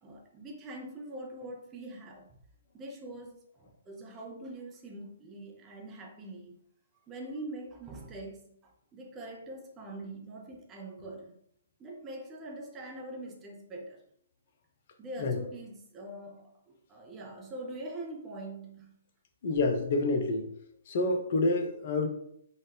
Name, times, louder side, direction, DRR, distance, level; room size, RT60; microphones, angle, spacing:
voice 1, 0.0-2.3 2.7-6.6 7.1-11.4 11.8-14.0 15.0-19.0, right 1 dB, 20° right, 0.8 m, -43 dB
voice 2, 19.4-20.4 20.9-22.1, left 2 dB, 45° left, 0.6 m, -27 dB
3.9 x 2.5 x 3.4 m
figure-of-eight pair, 125°, 0 cm